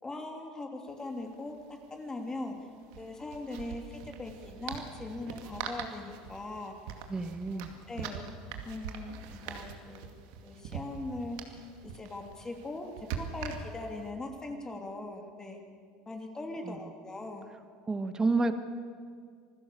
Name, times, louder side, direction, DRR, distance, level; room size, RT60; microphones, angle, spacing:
voice 1, 0.0-1.5 1.9-2.5 3.0-6.7 7.5-7.6 7.9-8.2 8.6-10.1 10.4-11.6 11.8-15.6 16.1-17.5, left 2 dB, 20° left, 3 dB, 3.2 m, -40 dB
sound 1, 0.9-1.0 1.2-1.3 2.8-14.0, right 7 dB, 75° right, 2.4 m, -43 dB
voice 2, 7.1-7.7 16.6-16.8 17.9-18.5, right 3 dB, 20° right, 8 dB, 1.6 m, -29 dB
26.0 x 16.0 x 6.9 m, 2.1 s
supercardioid pair, 100°, 3 cm